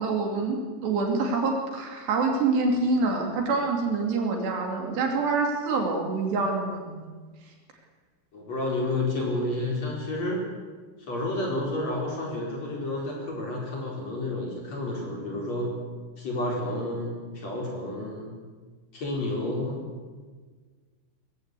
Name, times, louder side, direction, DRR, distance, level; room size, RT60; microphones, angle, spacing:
voice 1, 0.0-7.0, right 3 dB, 60° right, 2 dB, 4.6 m, -26 dB
voice 2, 8.3-10.5 11.1-15.7 16.2-18.3 18.9-19.8, left 1 dB, 35° left, -1 dB, 5.2 m, -30 dB
21.5 x 16.0 x 8.4 m, 1.5 s
omnidirectional pair, 5.7 m